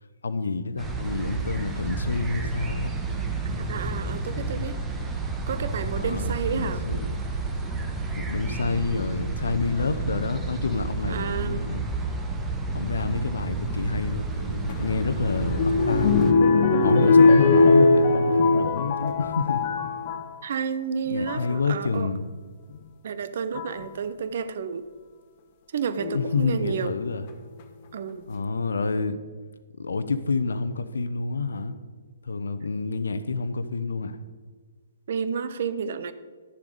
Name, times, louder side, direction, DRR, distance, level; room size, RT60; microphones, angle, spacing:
voice 1, 0.2-2.9 6.0-7.2 8.2-11.8 12.7-16.2 16.8-19.6 21.1-22.3 26.1-27.2 28.3-29.2 29.8-31.8 32.2-34.2, left 4 dB, 70° left, 12 dB, 0.7 m, -28 dB
sound 1, 0.8-16.3, right 3 dB, 10° right, 1.0 m, -31 dB
voice 2, 3.4-4.8 5.5-6.8 11.1-11.7 20.4-22.1 23.0-24.8 25.7-26.9 27.9-28.3 35.1-36.1, right 6 dB, 55° right, 12 dB, 0.6 m, -31 dB
sound 2, 14.7-20.3 21.1-21.5 22.7-22.8 23.5-23.9 26.0-26.6 27.3-27.4 27.6-27.7, left 3 dB, 35° left, 1.1 m, -20 dB
11.0 x 7.0 x 5.0 m, 1.5 s
figure-of-eight pair, 125°, 0 cm